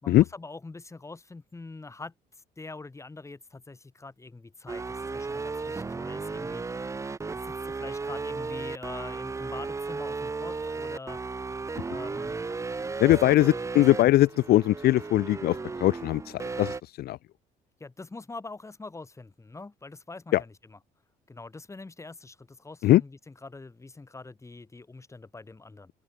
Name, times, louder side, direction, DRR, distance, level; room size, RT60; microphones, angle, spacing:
voice 1, 0.0-2.1 2.6-6.8 7.3-11.2 11.8-12.4 13.2-13.7 17.8-20.5 21.3-25.9, left 3 dB, 15° left, 5.5 m, -44 dB
sound 1, 4.7-16.8, right 4 dB, 15° right, 0.7 m, -35 dB
voice 2, 13.0-17.2 20.3-20.4 22.8-23.0, left 15 dB, 70° left, 0.7 m, -21 dB
open air
cardioid pair, 110°, 17 cm